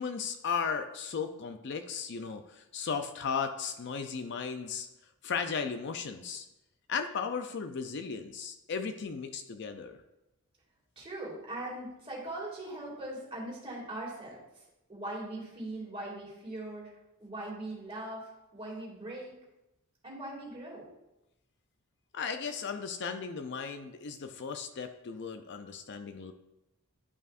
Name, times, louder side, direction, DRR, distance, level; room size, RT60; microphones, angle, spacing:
voice 1, 0.0-4.9 5.2-6.5 6.9-10.0 22.1-26.3, left 6 dB, 50° left, 7 dB, 0.5 m, -36 dB
voice 2, 11.0-14.4 14.9-16.9 17.2-19.3 20.0-20.9, right 1 dB, 25° right, -4 dB, 2.4 m, -40 dB
11.0 x 5.4 x 2.5 m, 0.93 s
head